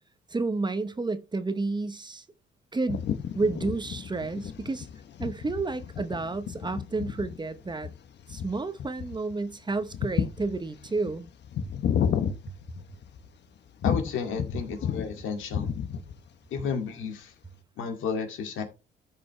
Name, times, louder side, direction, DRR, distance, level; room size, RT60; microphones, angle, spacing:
voice 1, 0.3-2.2 2.7-3.1 3.3-4.9 5.2-7.9 8.3-11.3, right 3 dB, 20° right, 0.9 m, -30 dB
sound 1, 2.9-13.3 13.8-15.2 15.4-16.3, left 8 dB, 60° left, 0.9 m, -32 dB
voice 2, 13.8-15.7 16.5-17.3 17.8-18.6, left 5 dB, 80° left, 2.2 m, -32 dB
13.5 x 5.3 x 3.2 m
cardioid pair, 90°, 20 cm